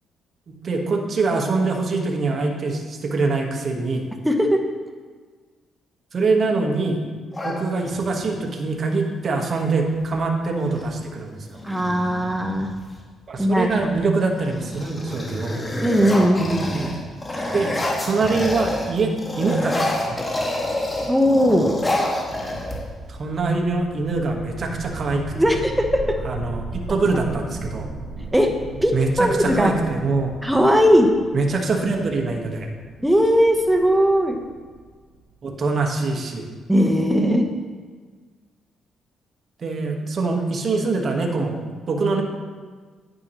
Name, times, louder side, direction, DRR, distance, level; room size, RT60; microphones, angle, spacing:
voice 1, 0.5-4.1 6.1-7.0 7.4-11.6 13.3-15.6 17.5-17.7 18.0-20.2 23.1-25.2 26.2-27.9 28.9-30.3 31.3-32.7 35.4-36.5 39.6-41.6 41.9-42.2, right 3 dB, 45° right, 2 dB, 1.4 m, -24 dB
voice 2, 4.2-4.6 11.6-12.7 13.4-13.9 15.8-16.9 21.1-21.7 25.3-26.2 28.3-28.5 28.8-29.8 30.4-31.1 33.0-34.4 36.7-37.5, equal, 5° right, 3 dB, 1.0 m, -18 dB
sound 1, 7.3-8.3 10.0-10.1 10.4-10.9 11.5-13.0 13.6-14.0 14.4-18.9 19.2-23.1, left 1 dB, 20° left, 2.0 m, -28 dB
sound 2, 22.7-35.7, right 3 dB, 70° right, 1.7 m, -37 dB
9.6 x 9.5 x 3.1 m, 1.5 s
cardioid pair, 90°, 0 cm